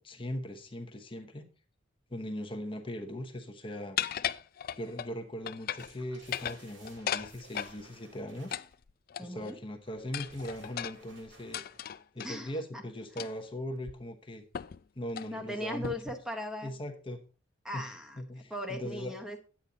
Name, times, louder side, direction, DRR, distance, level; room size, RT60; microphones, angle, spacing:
voice 1, 0.0-1.5 2.1-4.0 4.8-8.6 9.2-11.6 12.1-14.4 15.0-15.9 16.6-17.2 17.7-17.9 18.2-19.1, equal, 25° left, 4 dB, 1.0 m, -39 dB
sound 1, 4.0-5.1 5.5-5.9 6.2-7.8 8.5-9.5 10.1-12.3 13.2-13.5 13.9-14.0 14.5-14.8 15.1-15.3 15.8-16.2, left 10 dB, 50° left, 0.4 m, -36 dB
sound 2, 5.8-8.7 9.8-12.0, right 2 dB, 90° right, 4.1 m, -57 dB
voice 2, 9.2-9.6 12.2-12.8 13.2-13.3 15.3-16.7 17.6-19.4, equal, 5° right, 3 dB, 1.0 m, -39 dB
9.8 x 8.7 x 3.9 m, 0.35 s
head